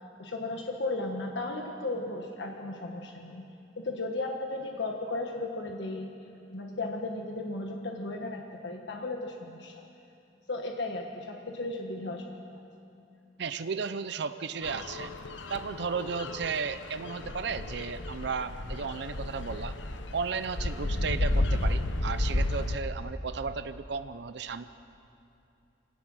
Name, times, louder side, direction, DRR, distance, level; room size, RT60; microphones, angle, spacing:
voice 1, 0.2-3.4 3.8-6.1 6.5-9.9 10.5-12.6, left 2 dB, 70° left, 1 dB, 1.4 m, -35 dB
voice 2, 13.4-15.1 15.5-19.8 20.1-24.7, right 5 dB, 65° right, 12 dB, 0.6 m, -34 dB
sound 1, 14.6-22.8, left 1 dB, 90° left, 1.0 m, -32 dB
24.0 x 17.5 x 6.3 m, 2.6 s
head